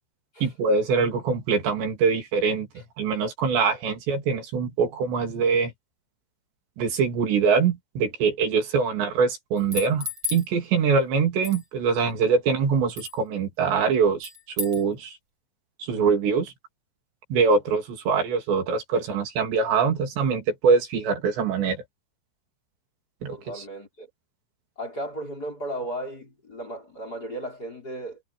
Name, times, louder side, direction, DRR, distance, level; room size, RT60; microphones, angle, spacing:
voice 1, 0.4-2.7 3.0-5.7 6.8-14.3 14.6-15.2 15.8-16.5 17.3-21.8 23.2-23.4, right 5 dB, 70° right, 5.2 m, -23 dB
sound 1, 9.6-10.5 11.4-11.6 13.0-13.2 14.2-14.8, left 3 dB, 25° right, 7.4 m, -33 dB
voice 2, 23.3-24.1 24.8-28.2, right 1 dB, 20° left, 5.1 m, -35 dB
omnidirectional pair, 5.3 m